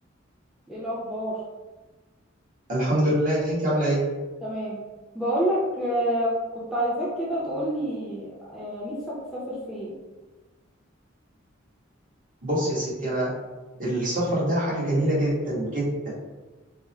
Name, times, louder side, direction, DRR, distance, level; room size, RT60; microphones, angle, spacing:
voice 1, 0.7-1.4 4.4-4.8 5.1-9.9, equal, ahead, -7 dB, 0.6 m, -28 dB
voice 2, 2.7-4.0 12.4-13.3 13.8-15.9, right 1 dB, 45° right, -7 dB, 1.4 m, -24 dB
3.5 x 2.1 x 4.2 m, 1.2 s
head